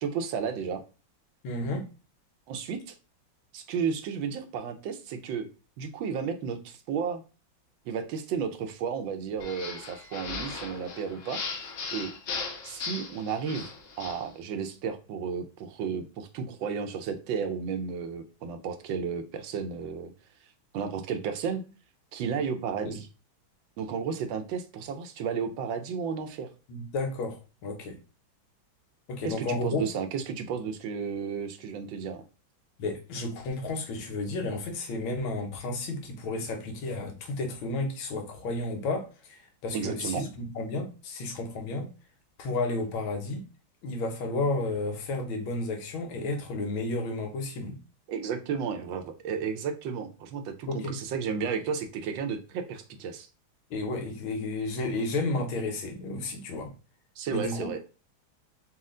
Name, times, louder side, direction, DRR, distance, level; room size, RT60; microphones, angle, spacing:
voice 1, 0.0-0.8 2.5-2.9 3.5-5.5 5.8-7.2 7.9-12.1 12.6-13.7 14.0-20.1 20.7-21.6 22.1-23.1 23.8-26.5 29.2-32.2 39.7-40.3 48.1-53.3 57.2-57.8, right 6 dB, 75° right, 1.3 m, -33 dB
voice 2, 1.4-1.9 22.8-23.0 26.7-28.0 29.1-29.8 32.8-41.9 42.4-43.5 43.8-47.8 50.7-50.9 53.7-56.7 57.3-57.7, left 2 dB, 80° left, 1.7 m, -32 dB
sound 1, 9.4-14.3, left 4 dB, 65° left, 1.4 m, -38 dB
4.3 x 2.4 x 3.7 m
omnidirectional pair, 2.2 m